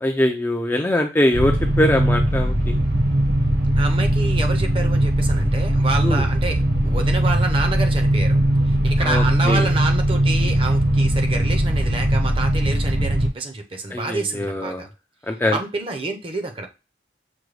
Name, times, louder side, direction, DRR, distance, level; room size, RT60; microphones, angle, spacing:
voice 1, 0.0-2.8 6.0-6.2 9.0-9.7 13.9-14.9 15.3-15.6, left 1 dB, 10° left, 3 dB, 0.4 m, -22 dB
sound 1, 1.3-13.3, right 1 dB, 60° right, 1.0 m, -19 dB
voice 2, 3.8-8.4 8.7-14.9 15.5-16.7, right 3 dB, 30° right, 4 dB, 0.6 m, -28 dB
6.1 x 2.2 x 3.2 m, 0.29 s
head